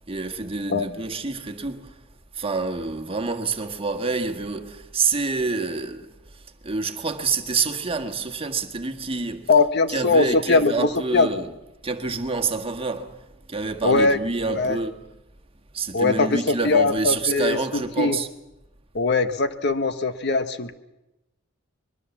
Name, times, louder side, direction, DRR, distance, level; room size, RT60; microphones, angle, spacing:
voice 1, 0.1-2.0 2.3-9.5 9.9-11.5 11.8-15.0 15.7-18.3, right 4 dB, 30° right, 1.6 m, -27 dB
voice 2, 9.5-11.3 13.8-14.2 14.4-14.8 15.9-18.2 18.9-20.8, left 3 dB, 55° left, 1.1 m, -21 dB
23.0 x 22.0 x 7.2 m
head